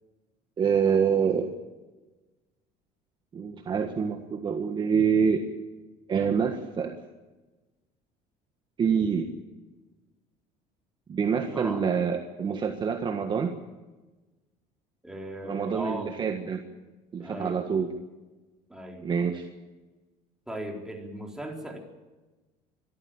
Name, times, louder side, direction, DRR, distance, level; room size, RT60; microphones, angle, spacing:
voice 1, 0.6-1.5 3.3-5.5 6.1-7.0 8.8-9.3 11.1-13.5 15.4-16.6 17.1-17.9 19.0-19.4, right 6 dB, 30° right, 5 dB, 1.6 m, -26 dB
voice 2, 11.5-11.9 15.0-16.1 17.2-17.6 18.7-19.1 20.5-21.8, right 1 dB, 5° right, 0 dB, 4.1 m, -37 dB
23.0 x 14.0 x 9.1 m, 1.2 s
cardioid pair, 140°, 15 cm